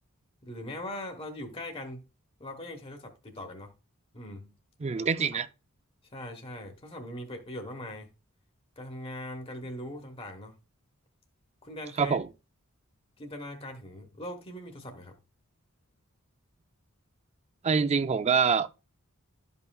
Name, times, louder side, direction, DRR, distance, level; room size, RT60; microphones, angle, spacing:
voice 1, 0.4-2.1 2.4-3.7 4.1-4.5 5.0-5.1 5.3-5.4 6.1-8.1 8.8-10.5 11.6-12.2 13.2-15.2, left 1 dB, 25° left, 1.1 m, -41 dB
voice 2, 4.8-5.5 12.0-12.3 17.6-18.7, right 5 dB, 30° right, 0.4 m, -25 dB
12.0 x 5.6 x 2.3 m
head